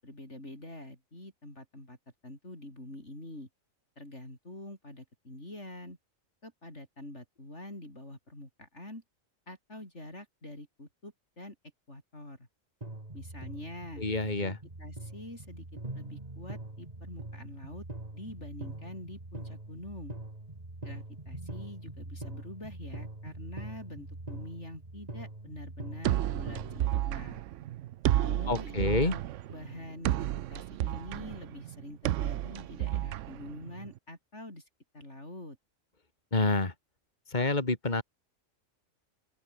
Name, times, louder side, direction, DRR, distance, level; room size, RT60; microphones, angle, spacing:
voice 1, 0.0-2.0 2.2-3.5 4.0-6.0 6.4-9.0 9.5-11.6 11.9-12.5 13.1-14.1 14.4-15.7 15.9-17.9 18.1-20.2 20.8-27.4 28.2-29.2 29.5-34.6 34.9-35.6, left 1 dB, 55° left, 8.1 m, -45 dB
sound 1, 12.8-26.8, right 2 dB, 30° right, 3.0 m, -43 dB
voice 2, 14.0-14.6 28.5-29.2 36.3-36.7 37.3-38.0, left 2 dB, 35° left, 3.1 m, -28 dB
sound 2, 26.0-34.0, right 13 dB, 70° right, 0.9 m, -32 dB
open air
omnidirectional pair, 1.4 m